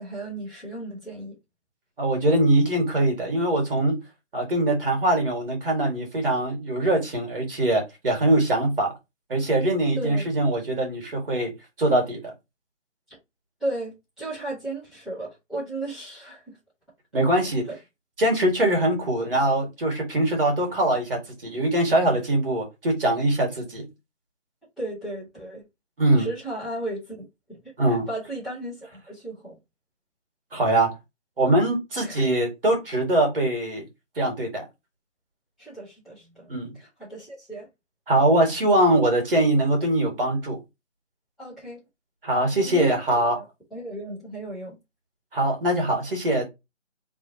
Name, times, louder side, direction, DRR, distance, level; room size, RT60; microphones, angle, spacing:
voice 1, 0.0-1.3 9.9-10.2 13.6-16.6 17.7-17.8 24.8-25.6 26.2-27.2 27.5-29.5 32.0-32.3 35.6-36.5 36.7-37.7 41.4-41.8 42.5-43.0 43.3-44.8, right 2 dB, ahead, 1.6 m, -35 dB
voice 2, 2.0-4.0 4.3-8.9 9.3-11.5 11.8-12.3 17.1-17.6 18.2-23.8 26.0-26.3 27.8-28.1 30.5-30.9 31.4-33.9 34.2-34.6 36.5-36.7 38.1-40.6 42.2-43.4 45.3-46.5, right 1 dB, 45° right, 2.2 m, -22 dB
4.7 x 3.6 x 2.9 m
figure-of-eight pair, 165°, 38 cm